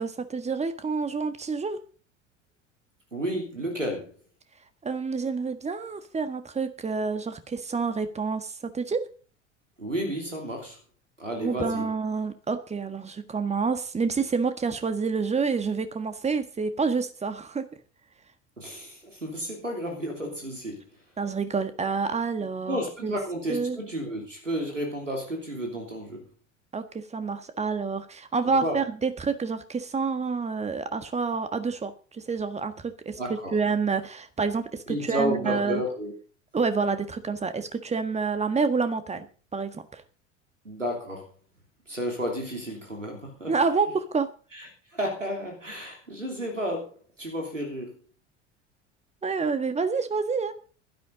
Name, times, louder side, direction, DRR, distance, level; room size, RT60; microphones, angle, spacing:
voice 1, 0.0-1.8 4.8-9.1 11.4-17.7 21.2-23.1 23.5-23.8 26.7-35.8 36.5-39.3 39.5-40.0 43.5-44.3 49.2-50.5, right 4 dB, 20° right, 10 dB, 1.6 m, -28 dB
voice 2, 3.1-4.1 9.8-10.8 11.2-11.9 18.6-20.8 22.7-26.2 28.5-28.8 33.2-33.5 34.9-36.1 40.6-41.3 41.9-43.5 44.5-44.7 44.9-48.0, equal, 90° right, 2 dB, 3.0 m, -32 dB
16.5 x 12.5 x 3.9 m, 0.38 s
figure-of-eight pair, 70°, 37 cm